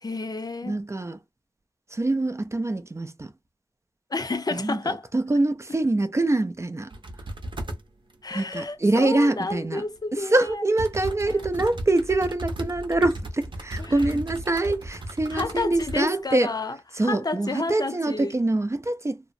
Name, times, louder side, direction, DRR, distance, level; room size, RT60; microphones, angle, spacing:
voice 1, 0.0-0.8 4.1-5.1 8.2-10.6 11.3-11.5 13.8-14.2 15.3-18.3, left 3 dB, 50° left, 0.5 m, -31 dB
voice 2, 0.6-1.2 1.9-3.3 4.5-6.9 8.3-9.8 10.3-16.5 17.0-19.2, right 2 dB, 35° right, 0.4 m, -24 dB
sound 1, 6.9-7.8 10.0-10.1 10.8-16.1 16.4-16.5, right 1 dB, 70° right, 0.7 m, -35 dB
2.7 x 2.0 x 2.5 m
wide cardioid pair, 60°, 9 cm